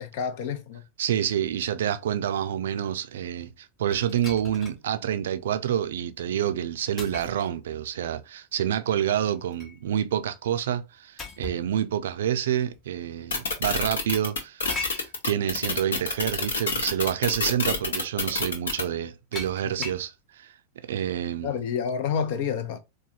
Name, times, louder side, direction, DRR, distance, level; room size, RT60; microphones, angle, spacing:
voice 1, 0.0-0.8 21.4-22.8, left 7 dB, 50° left, 0.6 m, -29 dB
voice 2, 1.0-20.5 20.8-21.5, right 10 dB, 60° right, 0.4 m, -28 dB
sound 1, 3.9-4.8 5.4-5.5 7.0-7.5 9.1-9.8 11.2-11.7 12.7-12.8 14.7-15.1 16.5-16.6 17.1-17.4 19.3-20.1, left 3 dB, 25° left, 0.9 m, -38 dB
sound 2, 13.3-18.8, left 3 dB, 65° left, 1.0 m, -27 dB
4.5 x 2.2 x 2.6 m
figure-of-eight pair, 90°, 0 cm